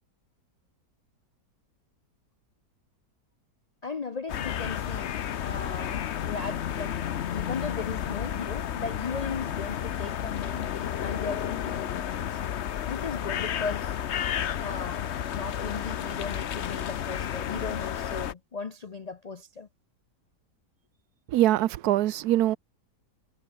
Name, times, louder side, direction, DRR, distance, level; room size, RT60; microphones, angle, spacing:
voice 1, 3.8-12.4 12.9-14.0 14.6-19.7, left 4 dB, 75° left, 0.3 m, -37 dB
sound 1, 4.3-18.3, left 9 dB, 55° left, 0.9 m, -32 dB
voice 2, 21.3-22.6, right 14 dB, 70° right, 1.2 m, -23 dB
omnidirectional pair, 1.8 m